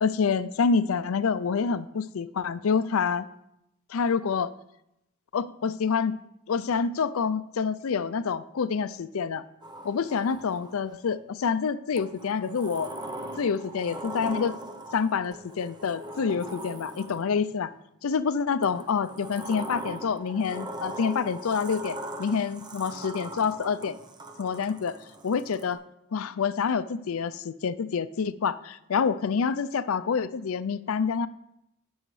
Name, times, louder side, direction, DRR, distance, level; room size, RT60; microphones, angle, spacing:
voice 1, 0.0-3.3 3.9-4.5 5.3-6.2 6.5-9.4 9.8-12.9 13.4-14.6 14.9-17.7 18.0-24.0 24.4-25.0 25.2-25.8 26.1-31.3, left 5 dB, 70° left, 14 dB, 0.4 m, -27 dB
Sliding door, 9.6-11.0 12.0-17.5 18.6-25.7, right 1 dB, 20° right, 0.7 m, -40 dB
16.5 x 6.3 x 3.2 m, 0.83 s
head